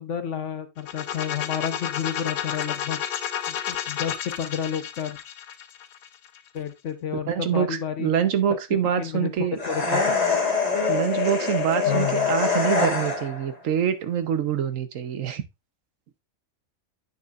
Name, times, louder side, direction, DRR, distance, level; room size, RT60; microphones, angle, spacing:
voice 1, 0.0-3.0 3.5-5.2 6.5-8.1 9.0-9.3 9.6-10.1 11.9-12.3, left 8 dB, 60° left, 1.2 m, -30 dB
sound 1, 0.8-6.6, left 9 dB, 80° left, 1.2 m, -31 dB
voice 2, 7.3-9.6 10.9-15.5, right 8 dB, 70° right, 1.1 m, -25 dB
sound 2, 9.6-13.5, left 4 dB, 30° left, 1.4 m, -24 dB
8.6 x 6.6 x 2.4 m
omnidirectional pair, 1.5 m